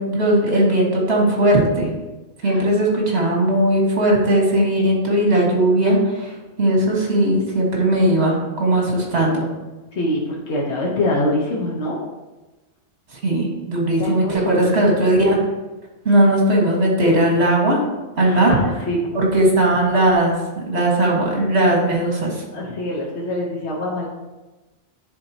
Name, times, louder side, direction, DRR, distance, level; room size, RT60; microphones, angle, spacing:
voice 1, 0.0-1.9 2.4-6.3 6.6-9.5 13.1-15.4 16.1-17.8 18.2-18.6 19.1-22.4, right 1 dB, 70° right, -2 dB, 1.9 m, -18 dB
voice 2, 9.9-12.0 14.0-14.7 18.2-19.0 22.5-24.1, left 1 dB, 80° left, -3 dB, 1.3 m, -24 dB
10.5 x 3.8 x 2.8 m, 1.1 s
omnidirectional pair, 1.1 m